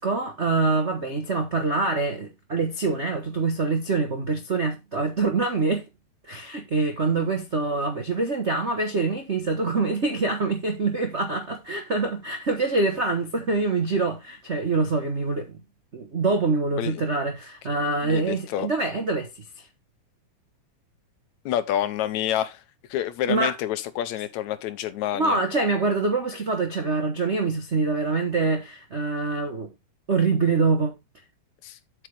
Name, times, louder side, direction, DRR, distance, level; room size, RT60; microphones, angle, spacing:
voice 1, 0.0-5.8 6.3-15.6 15.9-19.4 23.3-23.6 25.1-29.7 30.1-30.9, right 3 dB, 80° right, 0.6 m, -25 dB
voice 2, 17.7-18.7 21.5-22.6 22.9-25.4 31.6-31.8, left 11 dB, 80° left, 2.1 m, -28 dB
8.1 x 7.8 x 3.4 m
omnidirectional pair, 3.4 m